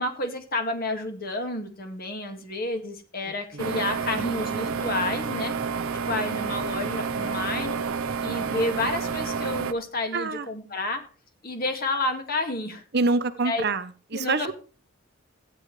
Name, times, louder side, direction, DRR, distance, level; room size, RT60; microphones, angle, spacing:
voice 1, 0.0-5.5 6.1-7.8 8.2-11.0 11.4-12.8 13.4-13.6 14.1-14.5, left 2 dB, 45° left, 5 dB, 2.0 m, -30 dB
sound 1, 3.6-9.7, right 5 dB, 85° right, 0.9 m, -29 dB
voice 2, 10.1-10.5 12.9-14.5, right 3 dB, 50° right, 10 dB, 0.9 m, -26 dB
14.5 x 9.7 x 3.3 m, 0.38 s
head